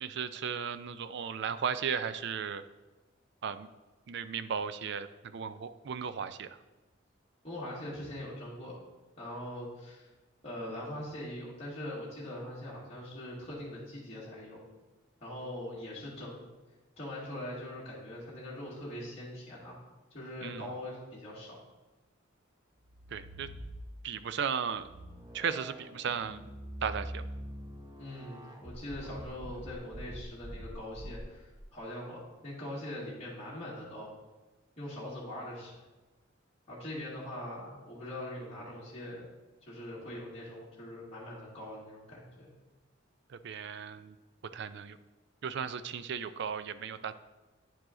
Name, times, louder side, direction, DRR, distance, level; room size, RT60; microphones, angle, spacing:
voice 1, 0.0-2.6 3.4-3.7 4.1-6.6 20.4-20.7 23.1-23.5 24.0-24.9 25.3-26.5 26.8-27.3 43.3-44.2 44.5-45.0 45.4-47.1, right 6 dB, 60° right, 12 dB, 0.4 m, -35 dB
voice 2, 7.4-8.8 9.2-10.1 10.4-14.6 15.2-16.4 17.0-19.8 20.1-21.6 28.0-34.1 34.8-35.8 36.7-39.3 39.6-42.5, left 1 dB, 35° left, -9 dB, 2.1 m, -42 dB
sound 1, 22.8-24.2 24.7-31.6, equal, 20° right, 0.7 m, -45 dB
9.4 x 4.8 x 3.8 m, 1.2 s
head